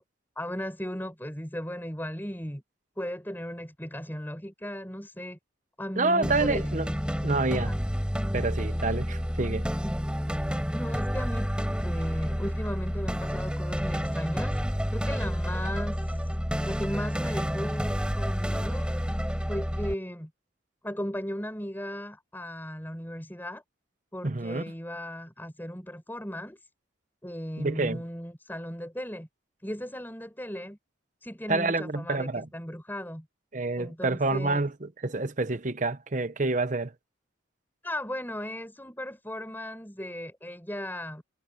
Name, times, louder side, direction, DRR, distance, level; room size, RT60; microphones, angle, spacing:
voice 1, 0.4-2.6 3.0-5.4 5.8-6.7 7.5-7.8 9.8-9.9 10.7-11.5 11.8-16.3 16.6-18.9 19.5-20.3 20.8-23.6 24.1-26.6 27.2-29.3 29.6-30.8 31.2-33.3 33.8-34.6 37.8-41.2, equal, 10° left, 6.5 m, -36 dB
voice 2, 6.0-6.9 7.2-7.7 8.3-9.6 24.2-24.6 27.6-28.0 31.5-32.5 33.5-36.9, right 3 dB, 40° right, 0.9 m, -28 dB
sound 1, 6.2-19.9, equal, 5° right, 6.5 m, -29 dB
head